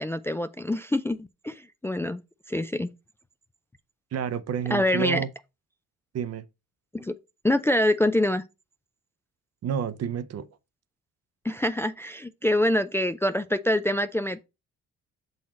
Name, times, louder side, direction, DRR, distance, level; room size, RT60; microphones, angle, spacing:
voice 1, 0.0-2.2 2.5-2.9 4.7-5.2 6.9-7.1 7.4-8.4 11.4-14.4, left 1 dB, 10° left, 0.3 m, -25 dB
voice 2, 4.1-5.3 6.1-6.4 9.6-10.5, right 8 dB, 55° right, 0.7 m, -29 dB
6.1 x 4.0 x 4.2 m
cardioid pair, 90°, 30 cm